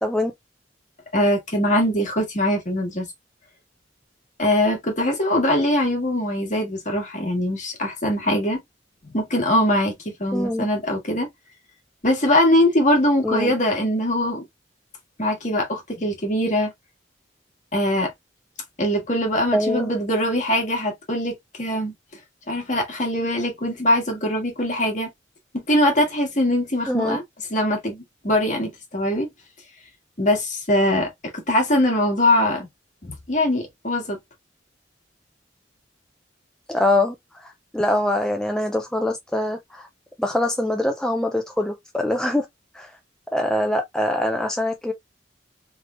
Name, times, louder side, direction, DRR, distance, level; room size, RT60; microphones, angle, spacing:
voice 1, 0.0-0.3 10.3-10.6 13.2-13.5 19.5-19.9 26.9-27.2 36.7-39.9 40.2-42.5 42.7-42.9 43.3-44.9, left 1 dB, 5° left, 0.4 m, -23 dB
voice 2, 1.1-3.1 4.4-8.6 9.1-11.3 12.0-14.4 15.2-16.7 17.7-18.1 18.8-21.9 22.5-25.1 25.7-27.2 27.5-29.3 30.2-31.1 31.5-32.7 33.0-34.2, left 1 dB, 40° left, 1.5 m, -22 dB
3.4 x 3.3 x 2.4 m
head